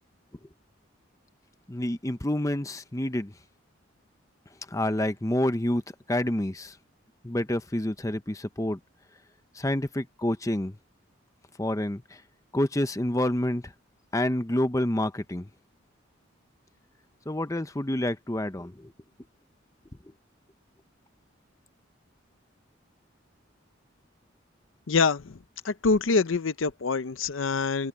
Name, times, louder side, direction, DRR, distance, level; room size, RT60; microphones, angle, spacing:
voice 1, 1.7-3.3 4.7-5.8 6.1-6.7 7.2-8.8 9.5-10.8 11.6-12.2 12.5-13.7 14.1-15.5 17.3-18.9, left 1 dB, 15° left, 0.7 m, -28 dB
voice 2, 24.9-25.4 25.6-27.9, left 4 dB, 75° left, 0.7 m, -25 dB
open air
head